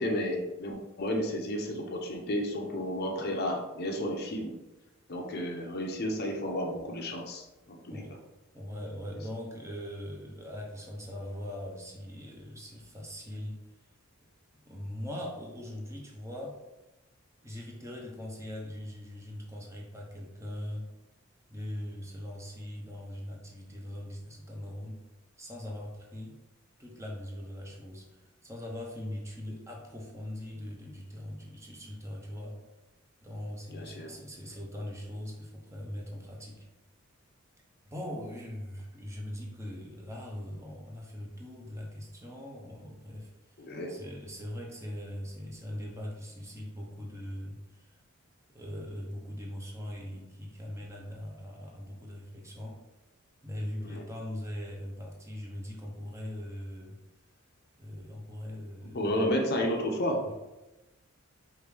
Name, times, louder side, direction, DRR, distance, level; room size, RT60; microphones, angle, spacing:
voice 1, 0.0-4.5 5.1-8.0 33.7-34.1 43.6-43.9 53.8-54.0 58.9-60.2, equal, 45° left, 1 dB, 0.7 m, -32 dB
voice 2, 7.9-8.3 8.5-13.6 14.7-16.6 17.4-20.9 21.5-25.0 25.4-26.4 26.8-32.6 33.2-36.7 37.9-43.3 43.9-48.0 48.5-52.8 53.4-57.0 57.8-59.3 60.3-60.4, left 1 dB, 15° right, -1 dB, 0.7 m, -41 dB
4.8 x 2.5 x 3.5 m, 1.0 s
head